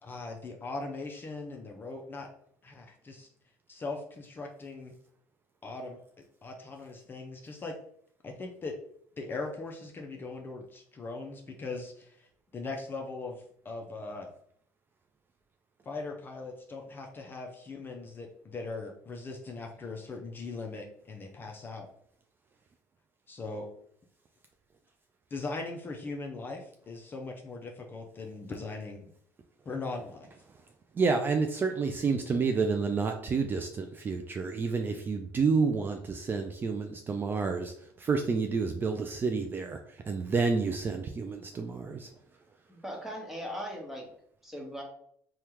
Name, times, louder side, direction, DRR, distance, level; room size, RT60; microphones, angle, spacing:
voice 1, 0.0-2.3 2.6-3.3 3.7-4.9 5.6-6.0 6.4-7.8 8.2-8.7 9.2-12.3 12.5-14.3 15.9-21.9 23.3-23.7 25.3-29.1 29.7-30.3, left 3 dB, 30° left, 2 dB, 0.5 m, -40 dB
voice 2, 30.9-42.1, right 4 dB, 30° right, 4 dB, 0.3 m, -29 dB
voice 3, 42.7-44.1 44.4-44.8, equal, 5° right, -1 dB, 1.1 m, -39 dB
3.4 x 2.2 x 2.9 m, 0.65 s
supercardioid pair, 100°, 7 cm